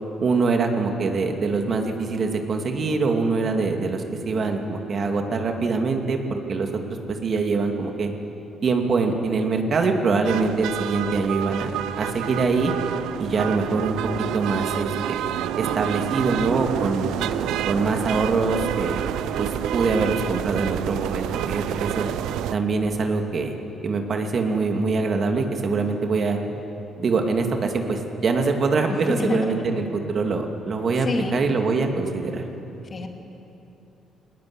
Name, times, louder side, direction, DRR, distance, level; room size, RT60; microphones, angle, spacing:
voice 1, 0.2-6.7 7.1-8.1 8.6-11.7 12.0-12.7 13.2-14.0 14.3-15.2 15.6-17.1 17.7-19.0 19.4-22.1 22.5-23.5 23.8-26.4 27.0-32.4, right 4 dB, 50° right, 4 dB, 2.5 m, -24 dB
sound 1, 10.2-22.5, right 11 dB, 90° right, 0.7 m, -28 dB
voice 2, 28.9-29.7 31.0-31.4 32.9-33.1, left 3 dB, 40° left, 3 dB, 2.7 m, -28 dB
20.0 x 19.5 x 9.8 m, 2.9 s
cardioid pair, 90°, 0 cm